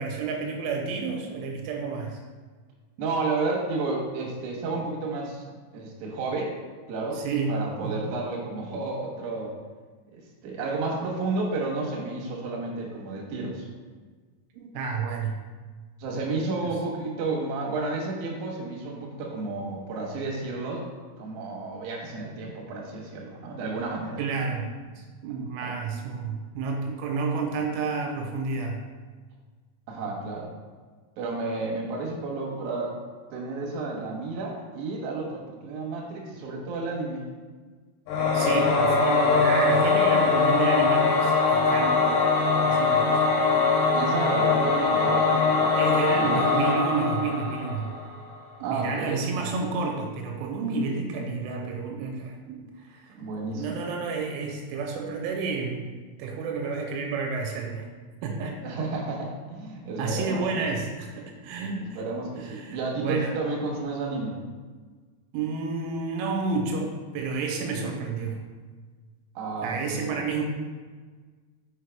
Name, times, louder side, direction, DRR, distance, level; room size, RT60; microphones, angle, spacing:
voice 1, 0.0-2.2 7.1-8.1 14.5-15.4 24.2-28.8 38.3-42.0 42.6-43.2 45.8-47.9 48.6-53.2 53.5-55.9 56.2-57.9 58.2-58.6 60.0-62.0 62.4-63.4 65.3-68.4 69.6-70.4, right 4 dB, 85° right, 2 dB, 3.2 m, -30 dB
voice 2, 3.0-5.4 5.7-6.5 6.9-9.5 10.1-13.6 16.0-20.8 21.2-24.2 25.6-25.7 29.9-30.5 31.2-33.0 33.3-37.3 43.9-45.7 46.1-46.4 48.6-49.2 53.1-53.8 58.6-60.4 61.8-64.4 69.4-70.1, right 3 dB, 70° right, -2 dB, 2.3 m, -31 dB
Singing / Musical instrument, 38.1-48.1, left 4 dB, 85° left, 3.9 m, -22 dB
6.5 x 5.6 x 3.4 m, 1.4 s
omnidirectional pair, 5.7 m